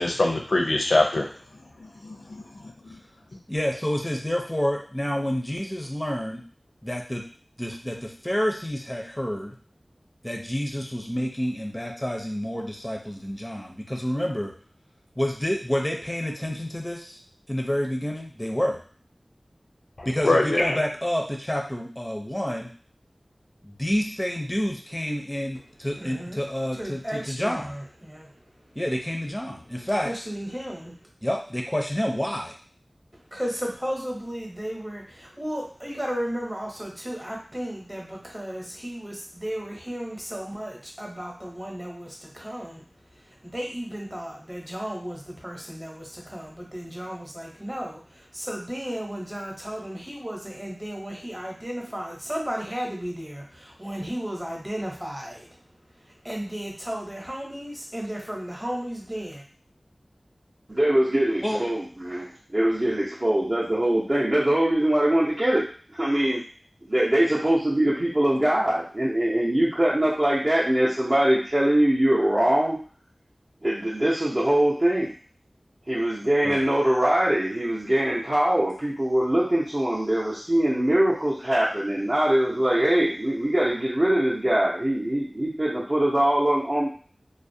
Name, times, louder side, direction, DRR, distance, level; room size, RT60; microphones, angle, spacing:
voice 1, 0.0-1.3 1.8-2.9 20.0-20.8, left 2 dB, 85° left, 0 dB, 0.5 m, -24 dB
voice 2, 3.5-6.4 6.8-7.2 7.6-9.5 10.2-14.5 15.2-17.2 17.5-18.8 20.1-22.7 23.6-27.7 28.8-30.1 31.2-32.5 61.4-61.6 76.4-76.6, equal, 15° left, 1 dB, 0.5 m, -28 dB
voice 3, 26.0-26.4 26.7-28.4 30.0-31.0 33.1-42.8 43.2-55.5 56.2-59.4, equal, 15° right, -2 dB, 0.8 m, -34 dB
voice 4, 60.7-66.4 66.8-72.8 73.6-75.1 75.9-86.9, right 1 dB, 40° right, -8 dB, 0.6 m, -22 dB
2.4 x 2.0 x 2.7 m, 0.42 s
wide cardioid pair, 50°, 0 cm